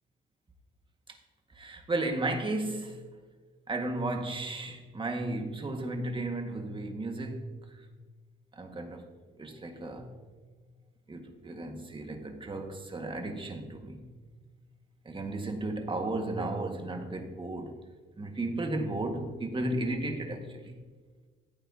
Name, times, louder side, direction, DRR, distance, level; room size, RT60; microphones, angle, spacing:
voice 1, 1.6-3.0 3.7-7.5 8.6-9.1 9.4-10.1 11.1-14.1 15.1-17.8 18.2-20.8, right 2 dB, 25° right, 3 dB, 1.8 m, -34 dB
15.5 x 9.2 x 2.9 m, 1.4 s
cardioid pair, 90°, 20 cm